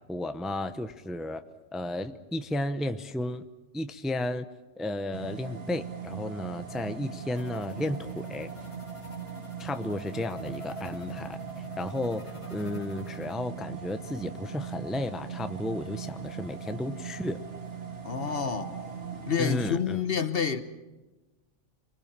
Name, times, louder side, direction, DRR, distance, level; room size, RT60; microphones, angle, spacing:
voice 1, 0.1-1.4 1.7-3.5 3.7-4.5 4.8-8.5 9.6-11.4 11.8-17.4 19.4-20.0, left 1 dB, ahead, 0.7 m, -33 dB
sound 1, 5.1-19.8, right 6 dB, 70° right, 2.2 m, -40 dB
sound 2, 7.4-13.3, equal, 25° left, 1.4 m, -47 dB
voice 2, 18.0-18.7 19.3-20.6, left 6 dB, 55° left, 1.3 m, -28 dB
26.5 x 21.0 x 7.4 m
omnidirectional pair, 1.3 m